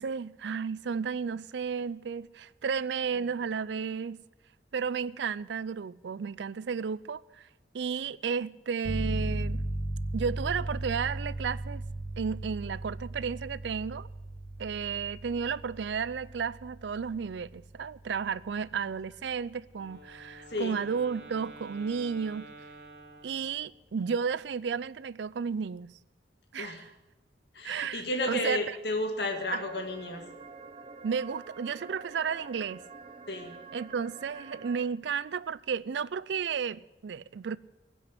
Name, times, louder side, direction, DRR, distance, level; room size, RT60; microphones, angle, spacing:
voice 1, 0.0-4.2 4.7-7.5 7.7-9.6 10.1-11.8 12.2-14.1 14.6-22.5 23.2-25.9 26.5-26.9 27.6-28.6 29.5-29.6 31.0-32.8 33.7-37.6, right 6 dB, 75° right, 0.4 m, -33 dB
sound 1, 8.8-19.4, right 1 dB, 5° left, 4.2 m, -37 dB
Wind instrument woodwind instrument, 19.7-23.8, right 2 dB, 55° right, 3.8 m, -49 dB
voice 2, 20.5-20.8 26.6-26.9 27.5-30.3 33.3-33.6, left 1 dB, 65° left, 2.1 m, -32 dB
sound 2, 29.3-34.9, right 4 dB, 30° right, 0.7 m, -48 dB
16.0 x 6.2 x 10.0 m
head